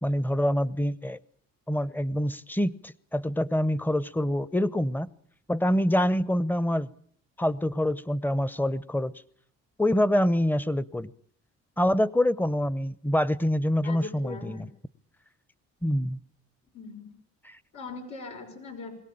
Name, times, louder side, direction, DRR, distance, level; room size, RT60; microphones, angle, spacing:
voice 1, 0.0-1.2 1.7-5.1 5.5-6.9 7.4-9.1 9.8-11.1 11.8-14.7 15.8-16.2 17.4-17.6, left 1 dB, 5° left, 19 dB, 0.9 m, -26 dB
voice 2, 13.8-14.6 16.7-17.1 17.7-18.9, left 4 dB, 80° left, 2 dB, 5.8 m, -40 dB
22.0 x 18.0 x 8.8 m, 0.62 s
cardioid pair, 90°, 30 cm